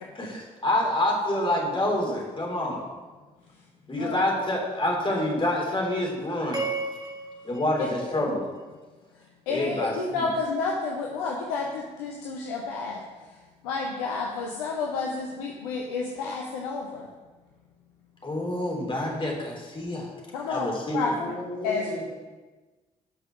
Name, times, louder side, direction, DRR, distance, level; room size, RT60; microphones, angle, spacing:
voice 1, 0.1-2.8 3.9-6.6 7.4-8.4 9.5-10.2 18.2-20.1 20.5-21.1, left 1 dB, 25° left, -2 dB, 3.4 m, -27 dB
sound 1, 6.5-8.9, right 3 dB, 20° right, 2.0 m, -35 dB
voice 2, 9.5-13.0 13.6-17.1 20.3-20.7 20.9-21.3 21.6-22.0, left 4 dB, 75° left, 0 dB, 0.8 m, -30 dB
voice 3, 21.0-22.2, left 2 dB, 40° left, -3 dB, 3.0 m, -35 dB
11.0 x 5.7 x 6.0 m, 1.3 s
figure-of-eight pair, 40°, 20 cm